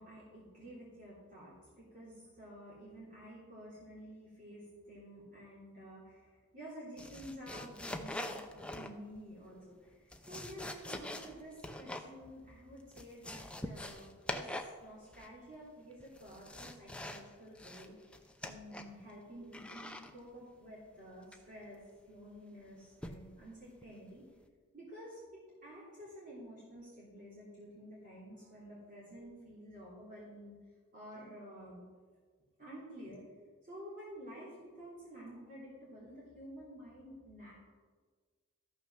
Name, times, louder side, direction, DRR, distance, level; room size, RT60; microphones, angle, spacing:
voice 1, 0.0-17.9 18.4-24.3 24.7-30.6 30.9-31.8 32.6-33.2 33.6-37.5, equal, 40° right, -8 dB, 3.2 m, -51 dB
sound 1, 7.0-9.2 9.9-12.1 12.4-12.5 12.8-14.8 15.1-15.5 16.0-17.3 17.5-19.0 19.5-20.1 21.3-21.6 23.0-23.3 23.8-24.1, left 1 dB, 5° left, 0.5 m, -44 dB
13.5 x 5.9 x 6.0 m, 1.5 s
head